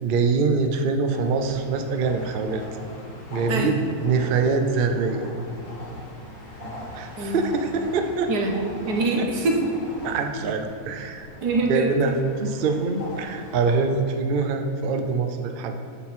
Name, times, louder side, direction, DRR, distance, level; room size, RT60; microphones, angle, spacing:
voice 1, 0.0-2.6 3.3-3.8 4.0-5.3 6.9-8.3 9.2-9.3 10.0-11.3 11.6-15.7, right 4 dB, 65° right, 6 dB, 0.5 m, -24 dB
sound 1, 1.1-13.8, left 1 dB, 55° left, 1.9 m, -40 dB
voice 2, 8.3-9.6 11.4-11.9, right 3 dB, 85° right, 1 dB, 1.5 m, -24 dB
12.5 x 4.3 x 4.1 m, 2.6 s
omnidirectional pair, 1.6 m